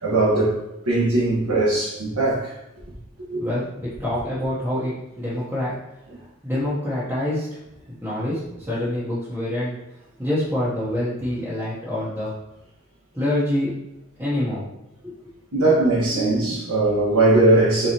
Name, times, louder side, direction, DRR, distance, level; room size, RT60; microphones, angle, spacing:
voice 1, 0.0-0.5 0.9-2.5 3.3-3.4 15.5-17.9, right 2 dB, 85° right, -8 dB, 1.3 m, -19 dB
voice 2, 4.0-5.8 6.4-7.5 8.0-8.4 8.7-9.7 10.2-12.3 13.1-13.7 14.2-14.7 15.0-15.2, left 1 dB, 10° right, -11 dB, 0.9 m, -25 dB
4.4 x 3.7 x 2.8 m, 0.91 s
head